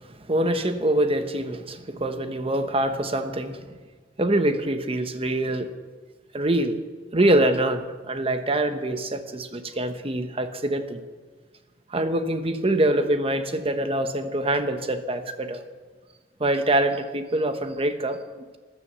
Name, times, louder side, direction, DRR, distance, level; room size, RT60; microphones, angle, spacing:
voice 1, 0.3-3.6 4.2-5.7 6.3-6.8 7.1-11.0 11.9-15.6 16.4-18.5, right 1 dB, 30° right, 8 dB, 1.1 m, -24 dB
14.0 x 12.0 x 6.9 m, 1.4 s
head